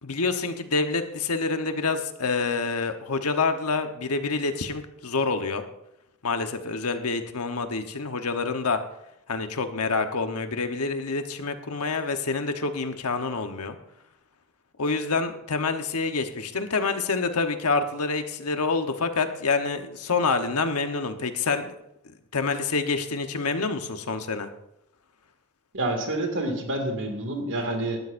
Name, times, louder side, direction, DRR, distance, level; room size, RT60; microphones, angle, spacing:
voice 1, 0.0-5.6 6.2-8.8 9.3-13.8 14.8-21.7 22.3-24.5, left 4 dB, 85° left, 7 dB, 1.1 m, -27 dB
voice 2, 25.7-28.0, right 1 dB, 55° right, 4 dB, 2.3 m, -28 dB
18.5 x 12.5 x 2.6 m, 0.84 s
head